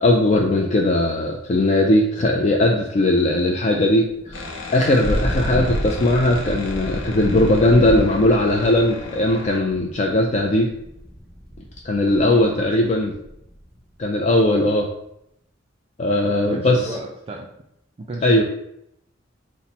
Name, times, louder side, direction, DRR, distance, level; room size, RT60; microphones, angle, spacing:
voice 1, 0.0-4.4 4.7-10.7 11.8-13.1 14.0-14.9 16.0-17.0 18.2-18.4, left 1 dB, 35° left, 1 dB, 0.4 m, -18 dB
Thunder / Rain, 4.1-13.6, equal, ahead, 0.7 m, -30 dB
sound 1, 4.3-9.6, left 3 dB, 75° left, 0.6 m, -36 dB
voice 2, 12.2-13.0 16.4-17.5 18.0-18.4, right 2 dB, 30° right, -1 dB, 0.4 m, -33 dB
4.1 x 2.0 x 4.1 m, 0.78 s
head